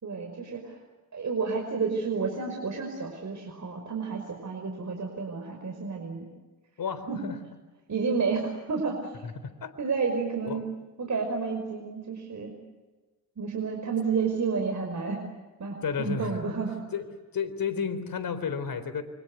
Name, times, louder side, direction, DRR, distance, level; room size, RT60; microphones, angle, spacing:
voice 1, 0.0-0.8 1.1-6.3 7.1-7.3 7.9-9.1 9.8-10.6 11.0-12.5 13.4-15.2 15.6-16.8, right 5 dB, 35° right, 3 dB, 5.6 m, -30 dB
voice 2, 6.8-7.4 9.2-9.8 10.5-10.6 15.8-16.6 16.9-17.1 17.3-19.0, left 6 dB, 45° left, 13 dB, 3.9 m, -32 dB
29.0 x 25.0 x 8.2 m, 1.2 s
hypercardioid pair, 60°, 47 cm